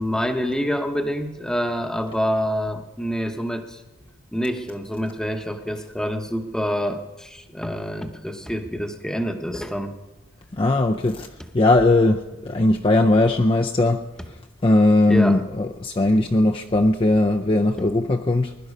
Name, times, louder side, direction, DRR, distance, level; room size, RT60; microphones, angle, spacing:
voice 1, 0.0-3.8 4.3-10.0 15.1-15.4, equal, 5° left, 0.9 m, -26 dB
voice 2, 10.5-18.6, left 2 dB, 25° left, 0.4 m, -19 dB
21.0 x 11.5 x 5.4 m
head